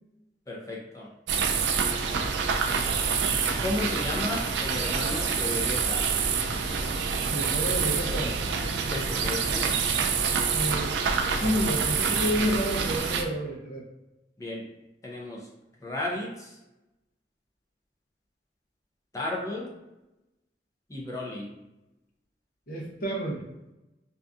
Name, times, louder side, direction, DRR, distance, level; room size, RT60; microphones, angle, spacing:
voice 1, 0.5-1.1 3.6-6.0 8.9-9.8 14.4-14.6 15.0-15.4 15.8-16.5 19.1-19.7 20.9-21.5, left 2 dB, 20° left, -3 dB, 0.5 m, -33 dB
sound 1, 1.3-13.2, right 5 dB, 75° right, 0.3 m, -27 dB
voice 2, 7.3-8.4 10.5-11.0 11.4-13.8 22.7-23.5, equal, 50° left, -3 dB, 0.7 m, -30 dB
2.6 x 2.3 x 2.4 m, 0.97 s
head